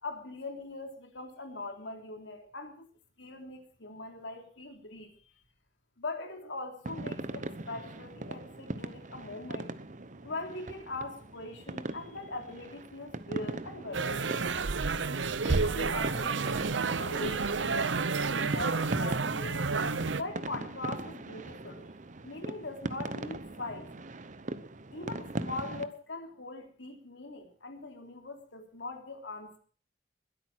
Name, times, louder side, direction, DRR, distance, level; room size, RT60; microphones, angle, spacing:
voice 1, 0.0-2.9 3.2-5.1 6.0-9.7 10.2-14.5 15.4-16.6 16.9-19.7 20.2-21.9 22.2-23.9 24.9-29.6, left 2 dB, 80° left, 4 dB, 3.4 m, -41 dB
sound 1, 6.8-25.8, right 2 dB, 45° right, 0.9 m, -40 dB
sound 2, 13.9-20.2, right 4 dB, 80° right, 0.8 m, -30 dB
21.5 x 8.9 x 6.1 m, 0.43 s
head